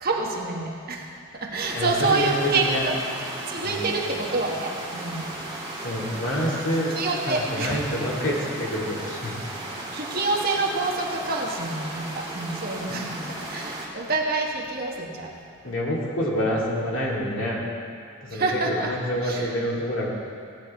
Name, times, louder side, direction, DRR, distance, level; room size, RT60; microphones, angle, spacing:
voice 1, 0.0-3.0 3.5-5.5 7.0-7.8 9.9-15.3 18.3-18.9 19.2-19.4, right 3 dB, 45° right, -1 dB, 1.3 m, -27 dB
sound 1, 1.6-13.9, right 1 dB, 20° right, 1.9 m, -36 dB
voice 2, 1.7-2.9 3.6-3.9 5.8-9.5 12.9-13.0 15.6-17.6 18.2-20.1, equal, 60° left, -4 dB, 2.5 m, -27 dB
16.0 x 9.9 x 4.3 m, 2.4 s
head